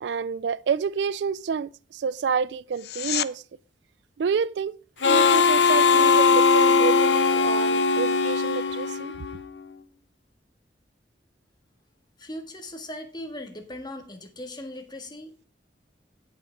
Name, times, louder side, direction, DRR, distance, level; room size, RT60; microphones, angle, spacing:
voice 1, 0.0-3.4 4.2-4.7 5.1-9.1, right 6 dB, 75° right, 0.4 m, -28 dB
sound 1, 2.7-3.3 14.7-14.8, left 12 dB, 65° left, 0.5 m, -29 dB
Harmonica, 5.0-9.5, left 4 dB, 90° left, 0.8 m, -20 dB
voice 2, 12.2-15.5, left 1 dB, 25° left, 1.7 m, -39 dB
17.0 x 5.6 x 3.5 m
head